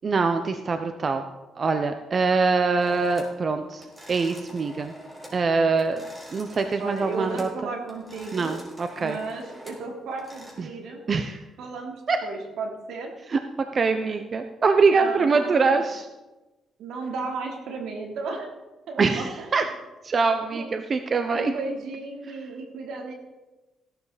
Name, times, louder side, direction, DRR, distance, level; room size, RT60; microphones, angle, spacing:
voice 1, 0.0-1.2 1.6-4.9 5.3-6.0 6.3-7.5 8.3-9.2 10.6-10.7 11.1-11.4 12.1-12.2 13.3-13.4 13.7-16.0 19.0-19.6 20.0-21.5, right 4 dB, 40° right, 7 dB, 0.9 m, -23 dB
sound 1, 2.8-3.4 3.8-5.4 5.7-7.6 7.9-10.5, equal, 10° right, 5.1 m, -45 dB
voice 2, 6.8-8.5 9.0-11.0 11.6-13.1 14.0-14.2 14.8-15.9 16.8-18.5 18.9-19.6 20.5-20.7 21.3-23.1, right 3 dB, 80° right, 1 dB, 3.3 m, -34 dB
17.0 x 12.0 x 4.2 m, 1.1 s
cardioid pair, 90°, 0 cm